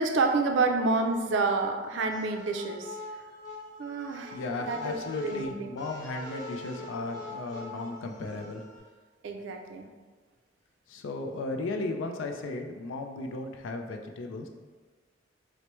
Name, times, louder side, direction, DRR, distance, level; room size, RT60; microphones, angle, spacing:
voice 1, 0.0-3.0 3.8-5.7 9.2-9.9, right 3 dB, 70° right, 4 dB, 0.4 m, -28 dB
sound 1, 2.1-8.8, left 2 dB, 20° left, 0.8 m, -43 dB
voice 2, 4.3-8.6 10.9-14.5, left 2 dB, 85° left, 4 dB, 0.4 m, -35 dB
4.4 x 2.1 x 3.0 m, 1.4 s
head